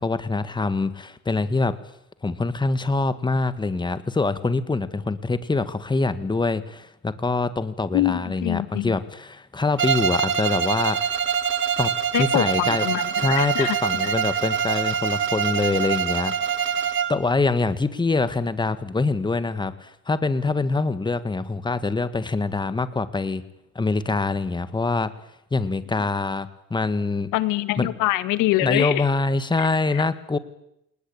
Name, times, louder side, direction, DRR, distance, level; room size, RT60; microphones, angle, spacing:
voice 1, 0.0-1.8 2.2-11.1 11.8-11.9 12.2-12.8 13.2-23.4 23.7-25.1 25.5-27.3 27.8-27.9 28.6-30.4, left 3 dB, 15° left, 13 dB, 1.8 m, -24 dB
voice 2, 7.9-8.9 12.1-13.8 14.0-14.1 27.3-29.1 29.6-30.0, left 17 dB, 75° left, 14 dB, 1.8 m, -25 dB
Bowed string instrument, 9.8-17.3, right 8 dB, 40° right, 1.9 m, -24 dB
27.5 x 20.0 x 8.9 m, 0.80 s
cardioid pair, 115°, 31 cm